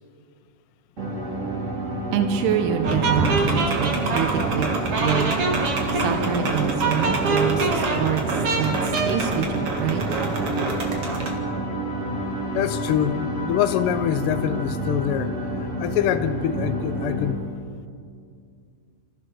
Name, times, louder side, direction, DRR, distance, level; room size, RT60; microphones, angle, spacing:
sound 1, 1.0-17.3, right 1 dB, 25° right, 3.3 m, -29 dB
voice 1, 2.1-4.7 5.0-5.4 5.9-10.0, right 8 dB, 80° right, 6 dB, 2.6 m, -26 dB
sound 2, 2.8-11.4, right 3 dB, 50° right, 2.6 m, -25 dB
voice 2, 12.5-15.3 15.8-17.4, left 10 dB, 80° left, 9 dB, 1.3 m, -24 dB
28.0 x 15.5 x 6.4 m, 2.3 s
omnidirectional pair, 3.6 m